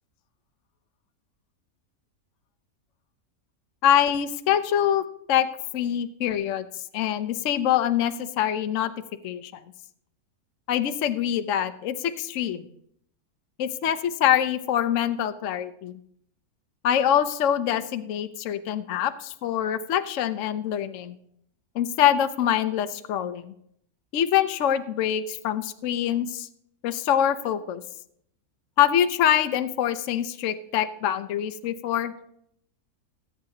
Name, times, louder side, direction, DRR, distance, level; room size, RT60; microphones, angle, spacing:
voice 1, 3.8-5.5 5.7-6.7 6.9-8.9 9.2-9.6 10.7-12.7 13.6-15.9 16.8-21.1 21.7-23.5 24.1-26.5 26.8-27.8 28.8-32.1, left 10 dB, 60° left, 10 dB, 0.9 m, -24 dB
20.5 x 8.9 x 2.8 m, 0.71 s
omnidirectional pair, 1.6 m